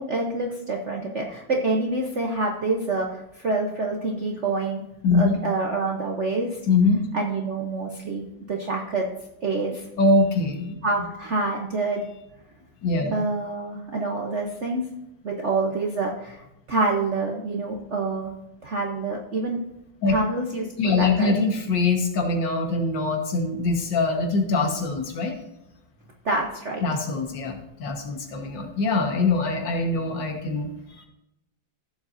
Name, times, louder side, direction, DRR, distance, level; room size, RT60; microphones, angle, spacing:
voice 1, 0.0-4.9 5.1-6.5 7.1-9.1 9.4-9.9 10.8-12.0 13.1-14.8 15.2-18.3 18.6-19.6 20.1-21.3 26.2-26.8, right 3 dB, 50° right, 0 dB, 0.9 m, -27 dB
voice 2, 5.0-5.4 6.7-7.0 10.0-10.8 12.8-13.1 20.0-20.2 20.8-25.4 26.8-31.1, left 3 dB, 65° left, 3 dB, 2.0 m, -23 dB
15.0 x 7.5 x 2.6 m, 0.88 s
omnidirectional pair, 2.2 m